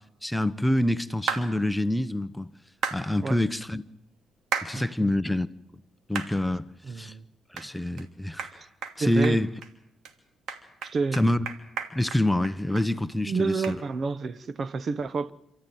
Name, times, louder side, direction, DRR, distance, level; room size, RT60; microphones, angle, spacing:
voice 1, 0.0-2.5 2.9-3.8 4.6-5.5 6.1-7.2 7.5-8.5 9.0-9.5 11.1-11.5 11.9-13.8, left 1 dB, 5° left, 0.8 m, -26 dB
sound 1, 1.3-1.5 2.8-3.0 4.5-4.7 5.2-5.3 6.1-6.3 6.8-6.9 7.6-7.7 8.0-8.1 8.4-8.5 8.8-9.0 9.2-9.7 10.0-10.1 10.5-12.9 13.1-13.2 13.6-13.8, right 6 dB, 75° right, 3.1 m, -32 dB
voice 2, 4.7-5.1 6.8-7.3 8.5-8.7 9.0-9.4 10.8-11.2 13.2-15.3, right 4 dB, 45° right, 1.1 m, -29 dB
27.5 x 13.5 x 9.3 m
cardioid pair, 90°, 0 cm